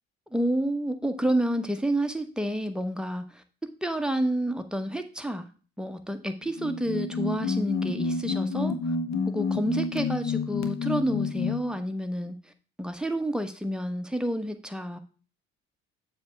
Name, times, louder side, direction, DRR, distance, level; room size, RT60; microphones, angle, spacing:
voice 1, 0.3-3.4 3.8-5.4 5.8-8.7 9.3-12.4 12.8-15.0, right 1 dB, ahead, 6 dB, 1.1 m, -29 dB
sound 1, 6.4-11.7, left 4 dB, 55° left, 1.1 m, -29 dB
7.2 x 3.4 x 6.0 m, 0.38 s
hypercardioid pair, 55°, 33 cm